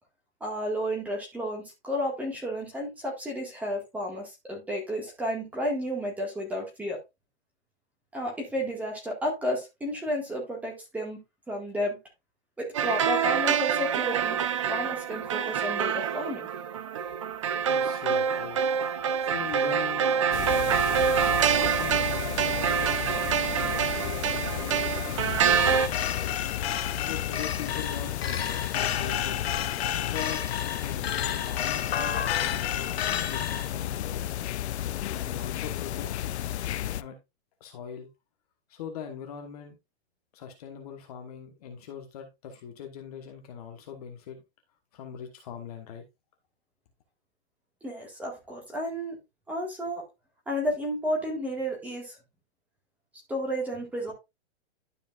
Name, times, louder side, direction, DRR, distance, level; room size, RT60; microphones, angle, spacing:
voice 1, 0.4-7.0 8.1-11.2 11.5-12.0 12.6-14.4 14.7-16.5 47.8-49.2 49.5-50.1 50.5-52.2 53.3-54.1, equal, 5° right, 1.8 m, -32 dB
sound 1, 12.7-25.9, right 7 dB, 30° right, 0.4 m, -26 dB
voice 2, 17.7-18.6 18.9-20.5 21.2-26.4 27.0-29.4 30.0-30.5 30.8-34.2 35.1-36.1 36.9-37.2 37.6-38.1 38.7-39.8 40.3-44.4 44.9-46.0, left 7 dB, 35° left, 1.2 m, -42 dB
sound 2, 20.3-37.0, left 12 dB, 80° left, 0.6 m, -33 dB
sound 3, 25.6-33.7, left 9 dB, 65° left, 1.2 m, -31 dB
12.0 x 5.1 x 2.4 m
hypercardioid pair, 175°, 33 cm